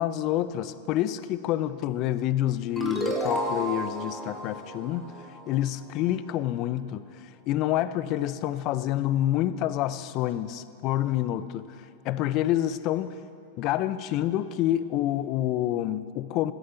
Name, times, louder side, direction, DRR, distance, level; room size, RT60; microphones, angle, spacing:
voice 1, 0.0-5.1 5.5-7.0 7.5-13.2 13.6-16.5, left 13 dB, 45° left, 15 dB, 0.5 m, -28 dB
sound 1, 2.8-6.0, equal, ahead, 1.8 m, -32 dB
16.0 x 13.0 x 3.9 m, 2.4 s
hypercardioid pair, 110°, 0 cm